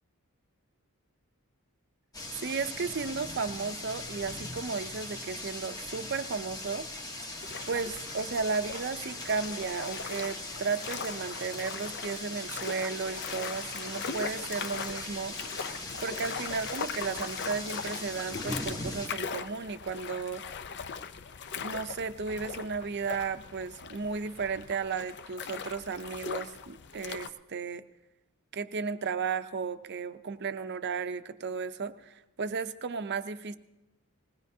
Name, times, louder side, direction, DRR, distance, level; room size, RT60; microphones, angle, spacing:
sound 1, 2.1-19.1, left 2 dB, 15° left, 1.0 m, -40 dB
voice 1, 2.4-6.9 7.7-15.4 16.0-20.4 21.6-27.8 28.5-33.6, right 5 dB, 50° right, 10 dB, 0.6 m, -34 dB
sound 2, 7.4-27.3, left 6 dB, 50° left, 0.6 m, -40 dB
20.5 x 18.5 x 2.8 m, 0.96 s
head